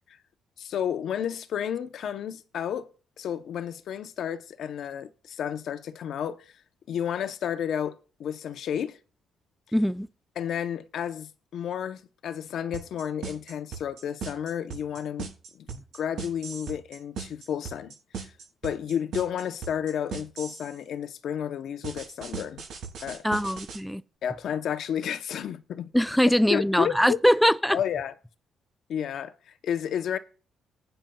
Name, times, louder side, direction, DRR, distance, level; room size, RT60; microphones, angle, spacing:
voice 1, 0.6-2.9 3.2-6.5 6.9-9.0 10.4-15.7 15.9-18.3 18.6-22.6 23.0-23.2 24.2-25.9 26.2-27.2 27.7-28.1 28.9-30.2, left 9 dB, 70° left, 0.7 m, -32 dB
voice 2, 9.7-10.1 23.2-24.0 25.9-27.8, equal, ahead, 0.4 m, -22 dB
sound 1, 12.7-20.7 21.8-23.8, right 6 dB, 75° right, 6.7 m, -38 dB
18.5 x 8.9 x 2.3 m
cardioid pair, 90°, 0 cm